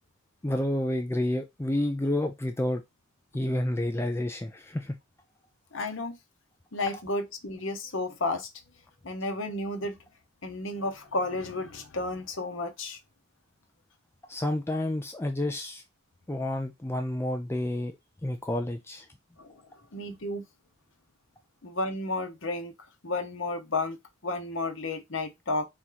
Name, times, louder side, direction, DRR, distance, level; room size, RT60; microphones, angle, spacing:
voice 1, 0.4-2.8 3.3-5.0 14.3-15.8 16.3-17.9 18.2-19.0, left 1 dB, 10° left, 0.4 m, -29 dB
voice 2, 5.7-6.2 6.7-8.5 9.0-10.0 10.4-13.0 19.4-19.5 19.9-20.4 21.6-22.7 23.0-24.0 24.2-25.7, left 2 dB, 60° left, 1.0 m, -32 dB
4.3 x 3.0 x 3.8 m
head